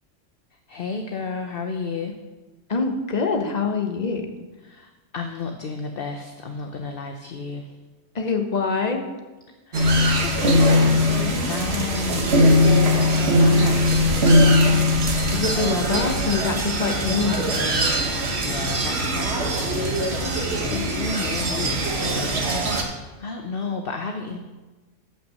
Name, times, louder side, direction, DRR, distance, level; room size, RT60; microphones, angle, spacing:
voice 1, 0.7-2.1 4.6-7.7 9.7-14.8 18.1-24.4, left 4 dB, 50° left, 4 dB, 1.0 m, -32 dB
voice 2, 2.7-4.3 8.1-9.0 15.3-17.8, left 4 dB, 35° left, 4 dB, 1.2 m, -25 dB
sound 1, 9.7-22.8, left 1 dB, 55° right, 1.6 m, -20 dB
13.0 x 5.9 x 6.5 m, 1.2 s
omnidirectional pair, 1.3 m